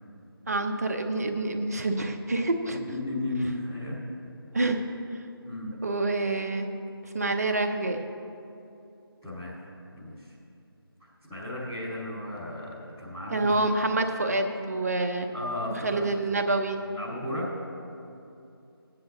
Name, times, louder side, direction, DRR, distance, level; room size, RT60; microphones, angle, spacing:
voice 1, 0.5-2.8 4.5-4.8 5.1-5.2 5.8-6.7 7.1-8.0 13.3-15.3 15.8-16.8, right 2 dB, 40° right, 5 dB, 0.9 m, -27 dB
voice 2, 2.7-4.0 5.4-5.7 9.2-9.6 9.9-10.3 11.0-13.5 15.3-16.1 16.9-17.5, left 1 dB, ahead, -16 dB, 0.4 m, -34 dB
16.5 x 9.7 x 3.9 m, 2.7 s
figure-of-eight pair, 160°, 13 cm